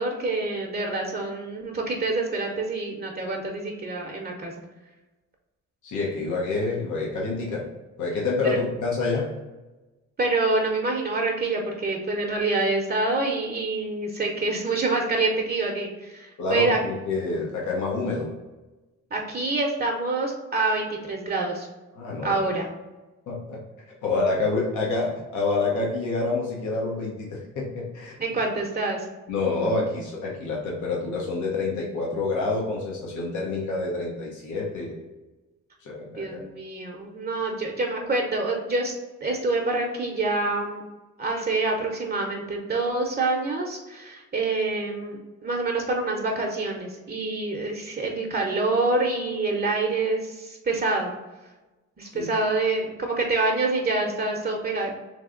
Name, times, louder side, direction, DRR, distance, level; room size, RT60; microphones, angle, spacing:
voice 1, 0.0-4.5 10.2-16.8 19.1-21.7 22.2-22.7 28.2-29.1 36.1-38.9 39.2-40.8 41.2-51.1 52.0-55.0, right 3 dB, 30° right, 1 dB, 0.8 m, -26 dB
voice 2, 5.8-7.6 8.0-9.3 16.4-18.3 21.9-22.3 23.3-23.6 24.0-28.2 29.3-35.0 35.8-36.4 52.1-52.3, left 3 dB, 75° left, -3 dB, 1.1 m, -27 dB
3.3 x 3.3 x 3.8 m, 1.1 s
cardioid pair, 90°, 30 cm